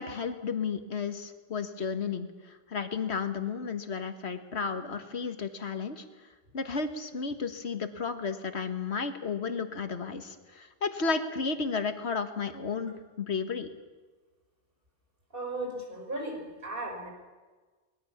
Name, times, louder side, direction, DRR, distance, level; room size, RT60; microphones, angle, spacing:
voice 1, 0.0-6.1 6.5-13.7, left 5 dB, 70° left, 8 dB, 1.8 m, -33 dB
voice 2, 15.3-17.1, right 2 dB, 50° right, 3 dB, 5.0 m, -36 dB
24.0 x 20.5 x 7.3 m, 1.3 s
omnidirectional pair, 1.2 m